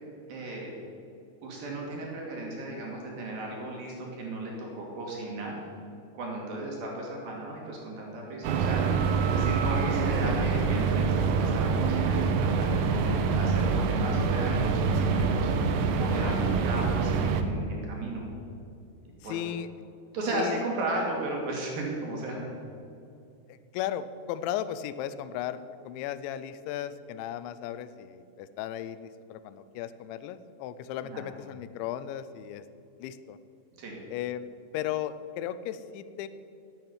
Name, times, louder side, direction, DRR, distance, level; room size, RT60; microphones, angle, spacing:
voice 1, 0.3-0.8 1.4-5.6 6.1-18.3 19.2-19.4 20.1-22.5 31.0-31.2 33.8-33.9, right 2 dB, 55° right, -1 dB, 4.1 m, -35 dB
sound 1, 8.4-17.4, right 5 dB, 80° right, 2.0 m, -26 dB
voice 2, 19.2-19.7 20.3-20.6 23.5-32.6 33.0-33.4 34.1-36.3, left 11 dB, 85° left, 13 dB, 3.0 m, -36 dB
12.5 x 9.1 x 9.5 m, 2.6 s
omnidirectional pair, 5.1 m